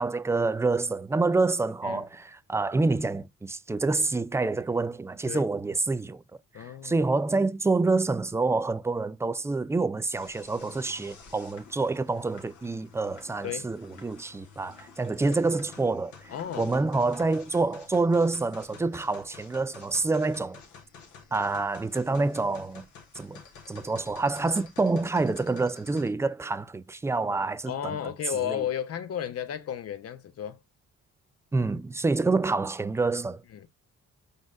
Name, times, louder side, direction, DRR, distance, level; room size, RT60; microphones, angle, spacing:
voice 1, 0.0-6.2 6.6-20.6 21.3-22.8 23.2-23.4 23.7-28.0 28.5-28.6 31.5-33.4, right 3 dB, 10° right, 0.3 m, -27 dB
voice 2, 6.5-7.0 13.4-13.7 15.2-15.3 16.3-16.8 27.7-30.6 33.5-33.7, left 9 dB, 55° left, 0.7 m, -33 dB
sound 1, 10.1-26.1, left 5 dB, 75° left, 1.4 m, -50 dB
5.0 x 3.9 x 2.4 m
cardioid pair, 90°, 30 cm